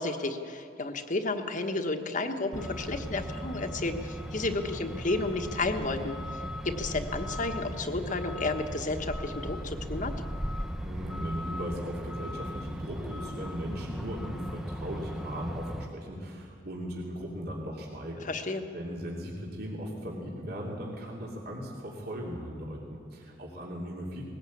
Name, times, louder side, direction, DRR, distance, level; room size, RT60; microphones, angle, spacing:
voice 1, 0.0-6.1 6.6-10.1 18.2-18.6, left 2 dB, 45° left, 6 dB, 1.3 m, -32 dB
Truck, 2.5-15.9, equal, 5° right, 0.9 m, -37 dB
voice 2, 10.8-18.2 18.7-24.2, equal, 55° right, -3 dB, 3.0 m, -38 dB
20.5 x 17.0 x 8.6 m, 2.4 s
head